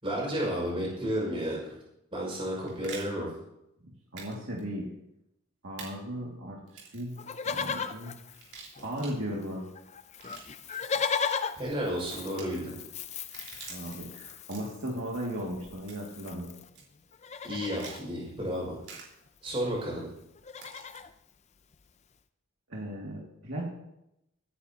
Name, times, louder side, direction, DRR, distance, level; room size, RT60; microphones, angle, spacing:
voice 1, 0.0-1.8 2.1-3.3 11.6-12.8 17.4-18.8 19.4-20.0, equal, 25° right, -4 dB, 5.6 m, -32 dB
sound 1, 2.3-3.1 4.2-4.3 4.6-4.7 5.8-5.9 6.7-7.1 8.3-9.1 10.0-11.0 12.2-12.4 13.1-14.0 14.4-14.9 15.9-16.2 16.7-16.8 17.8-18.0 18.8-19.0 20.5-21.0, right 5 dB, 85° right, 4.3 m, -46 dB
voice 2, 4.1-4.9 5.6-8.1 8.8-9.7 13.7-16.5 22.7-23.7, equal, 60° right, -4 dB, 2.3 m, -36 dB
Livestock farm animals working animals, 7.2-9.2 9.4-9.5 9.8-16.7 17.1-18.0 19.3-19.4 19.5-19.8 20.2-21.1 21.7-21.8, left 6 dB, 30° left, 0.5 m, -37 dB
25.0 x 10.0 x 2.9 m, 0.84 s
head